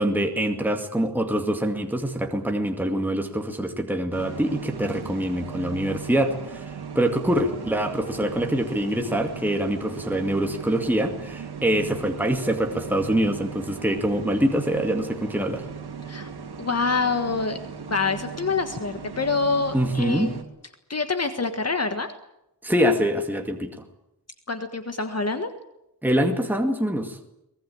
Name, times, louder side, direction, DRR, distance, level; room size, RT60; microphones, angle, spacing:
voice 1, 0.0-15.6 19.7-20.3 22.6-23.7 26.0-27.2, equal, 5° right, 4 dB, 2.3 m, -24 dB
sound 1, 4.1-20.4, right 6 dB, 70° right, 2.9 m, -38 dB
voice 2, 16.6-17.6 17.9-20.4 20.9-22.1 24.5-25.5, left 4 dB, 40° left, 8 dB, 1.6 m, -26 dB
24.0 x 20.0 x 8.6 m, 0.84 s
wide cardioid pair, 140°, 40 cm